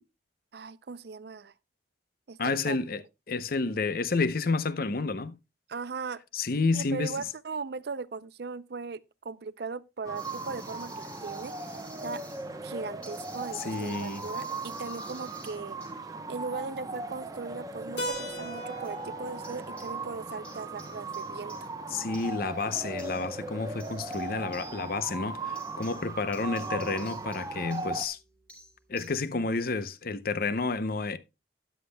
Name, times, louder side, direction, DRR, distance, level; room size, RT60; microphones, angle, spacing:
voice 1, 0.5-1.5 2.3-2.4 2.6-2.8 5.7-6.2 6.7-11.7 12.0-12.2 12.6-15.8 16.3-21.7, right 4 dB, 60° right, 0.5 m, -38 dB
voice 2, 2.4-3.0 3.3-5.4 6.3-7.2 13.5-14.2 21.9-28.2 28.9-31.2, left 3 dB, 55° left, 0.7 m, -30 dB
sound 1, 10.0-28.1, right 2 dB, 20° right, 0.8 m, -38 dB
sound 2, 10.1-12.5 13.0-15.9 18.8-19.1 19.4-20.2 20.4-29.1, right 1 dB, 5° left, 4.6 m, -52 dB
Keyboard (musical), 18.0-22.4, right 1 dB, 80° left, 2.8 m, -41 dB
13.0 x 10.0 x 2.2 m
head